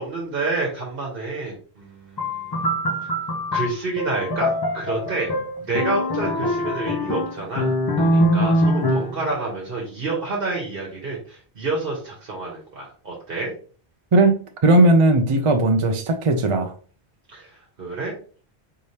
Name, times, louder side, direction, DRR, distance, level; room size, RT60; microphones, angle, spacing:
voice 1, 0.0-2.7 3.5-5.3 5.6-13.5 17.3-18.1, right 3 dB, 65° right, -2 dB, 1.2 m, -29 dB
sound 1, 2.2-9.2, equal, 30° left, 0.5 m, -23 dB
voice 2, 14.1-16.7, right 2 dB, 45° right, 5 dB, 0.4 m, -17 dB
4.6 x 3.3 x 2.8 m, 0.41 s
omnidirectional pair, 1.0 m